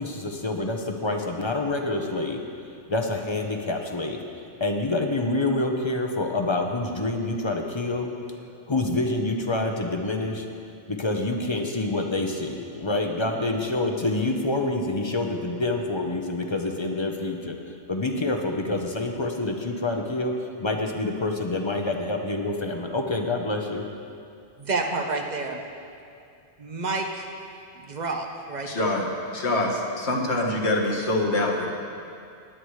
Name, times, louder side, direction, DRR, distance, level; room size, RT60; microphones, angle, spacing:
voice 1, 0.0-2.4 2.9-4.2 4.6-8.1 8.7-10.5 10.9-17.6 17.9-20.3 20.6-23.8, left 2 dB, 30° left, 3 dB, 0.8 m, -27 dB
voice 2, 24.6-25.6 26.6-27.3 27.9-28.9, right 3 dB, 45° right, 3 dB, 1.0 m, -29 dB
voice 3, 28.6-29.1 29.3-31.7, left 2 dB, 75° left, 0 dB, 1.6 m, -25 dB
19.0 x 9.7 x 3.2 m, 2.5 s
omnidirectional pair, 1.1 m